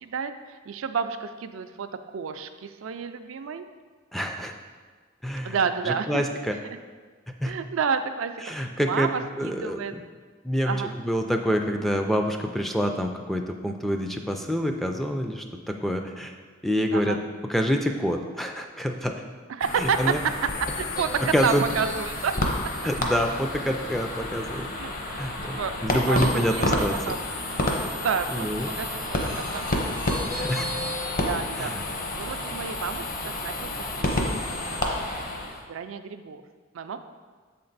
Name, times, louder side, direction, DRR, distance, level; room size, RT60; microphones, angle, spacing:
voice 1, 0.0-3.6 5.4-6.2 7.5-9.9 10.7-10.9 16.9-17.2 19.5-20.3 20.6-22.4 24.8-24.9 25.4-27.2 28.0-28.5 28.8-29.0 29.4-30.2 31.2-31.7 32.2-33.7 34.0-35.3 35.6-36.4 36.7-37.0, right 6 dB, 75° right, 8 dB, 0.4 m, -30 dB
voice 2, 4.1-4.5 5.2-5.6 5.8-6.6 7.4-7.5 8.4-9.1 9.4-10.0 10.4-10.7 11.0-16.3 16.6-17.2 17.5-19.2 19.8-20.2 21.2-21.6 22.8-24.7 25.2-27.0 28.3-28.7 30.3-30.7 31.6-31.8, equal, ahead, 3 dB, 0.3 m, -27 dB
sound 1, 19.6-35.6, left 1 dB, 45° left, 0.7 m, -30 dB
7.1 x 4.3 x 3.9 m, 1.5 s
head